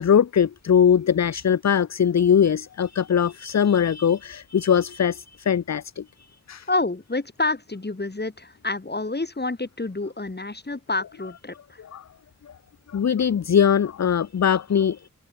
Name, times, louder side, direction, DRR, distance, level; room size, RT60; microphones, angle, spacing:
voice 1, 0.0-6.0 6.5-6.7 11.9-12.0 12.9-15.1, left 8 dB, 60° left, 0.6 m, -21 dB
voice 2, 6.7-11.8, left 2 dB, 30° left, 4.6 m, -28 dB
wide cardioid pair, 85°, 31 cm